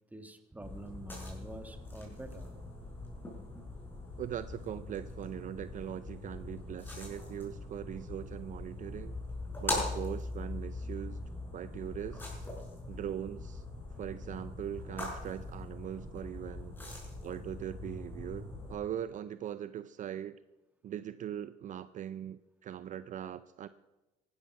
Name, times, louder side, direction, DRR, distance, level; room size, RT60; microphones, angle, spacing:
voice 1, 0.1-2.5, right 2 dB, 10° right, 7 dB, 1.7 m, -47 dB
sound 1, 0.6-18.7, left 2 dB, 10° left, 5.8 m, -41 dB
voice 2, 4.2-9.2 9.6-11.2 11.5-12.5 12.9-13.6 14.0-16.7 17.2-20.4 20.8-23.7, right 10 dB, 50° right, 14 dB, 0.5 m, -41 dB
15.5 x 12.0 x 5.9 m, 1.0 s
cardioid pair, 110°, 17 cm